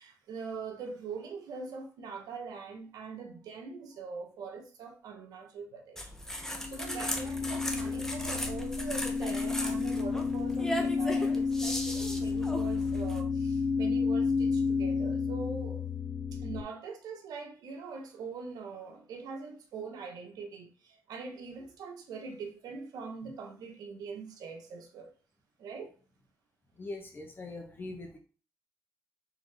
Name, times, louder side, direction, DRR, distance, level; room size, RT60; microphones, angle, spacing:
voice 1, 0.0-15.8 16.3-25.1 25.6-25.9, right 5 dB, 80° right, 0.9 m, -43 dB
sound 1, 6.0-13.2, equal, 5° left, 0.9 m, -38 dB
sound 2, 6.5-16.6, left 5 dB, 55° left, 0.7 m, -31 dB
voice 2, 26.8-28.2, left 2 dB, 35° left, 1.4 m, -42 dB
3.9 x 3.6 x 3.2 m
cardioid pair, 70°, 6 cm